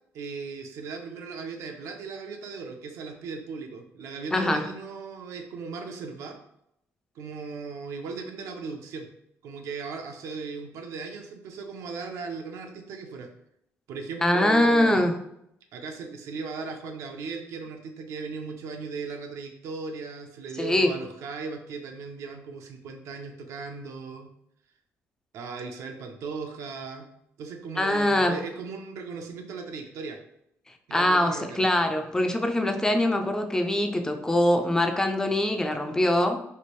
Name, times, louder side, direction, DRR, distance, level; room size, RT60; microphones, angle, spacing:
voice 1, 0.1-6.4 7.2-9.1 9.4-13.3 13.9-15.2 15.7-24.3 25.3-27.1 27.4-30.2 30.9-31.7, right 4 dB, 75° right, 4 dB, 0.5 m, -37 dB
voice 2, 4.3-4.7 14.2-15.1 20.6-21.0 27.8-28.4 30.9-36.4, left 1 dB, 10° left, 6 dB, 0.3 m, -23 dB
3.2 x 2.5 x 3.0 m, 0.77 s
cardioid pair, 125°, 5 cm